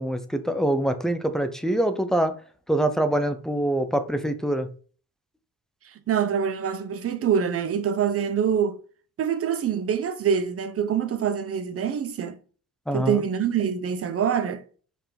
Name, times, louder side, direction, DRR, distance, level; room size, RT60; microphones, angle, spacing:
voice 1, 0.0-2.3 2.7-4.7 12.9-13.2, right 1 dB, ahead, 0.7 m, -24 dB
voice 2, 5.8-8.8 9.2-12.4 12.9-14.6, right 7 dB, 40° right, 1.0 m, -25 dB
5.5 x 4.7 x 5.8 m
cardioid pair, 150°, 35 cm